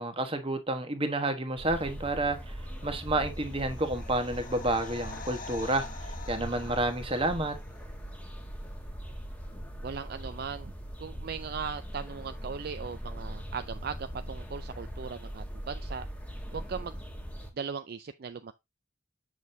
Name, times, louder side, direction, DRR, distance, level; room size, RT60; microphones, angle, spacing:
voice 1, 0.0-2.6 2.8-7.6, right 2 dB, 25° right, 1.2 m, -30 dB
sound 1, 1.6-17.5, equal, 5° left, 1.3 m, -41 dB
sound 2, 3.0-7.9 8.1-8.2, left 4 dB, 40° left, 1.1 m, -46 dB
voice 2, 9.8-10.7 11.0-16.1 16.5-16.9 17.6-18.5, right 6 dB, 50° right, 0.4 m, -38 dB
7.3 x 6.2 x 2.7 m
head